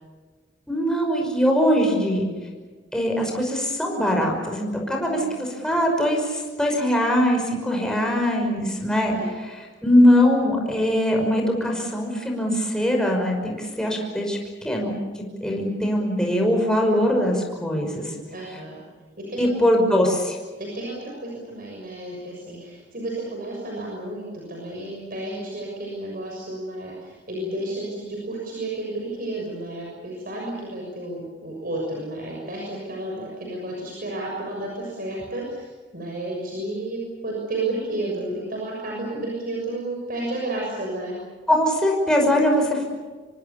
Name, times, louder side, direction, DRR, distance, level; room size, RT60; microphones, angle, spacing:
voice 1, 0.7-2.3 2.9-18.1 19.4-20.4 41.5-42.8, equal, 5° left, 0 dB, 5.7 m, -22 dB
voice 2, 18.3-18.8 19.3-19.5 20.6-41.1, right 2 dB, 50° right, -2 dB, 6.7 m, -32 dB
26.5 x 24.5 x 7.1 m, 1.4 s
head